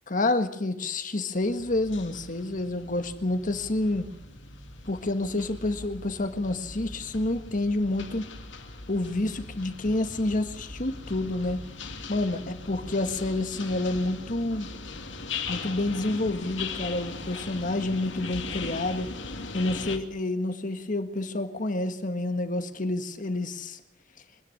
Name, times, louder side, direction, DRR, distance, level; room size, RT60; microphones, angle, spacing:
voice 1, 0.1-4.1 4.9-8.3 8.9-11.6 12.1-14.7 15.5-19.1 19.5-23.8, left 2 dB, 45° left, 8 dB, 1.6 m, -28 dB
sound 1, 1.4-20.0, left 4 dB, 90° left, 2.4 m, -39 dB
24.5 x 10.5 x 10.0 m, 0.87 s
head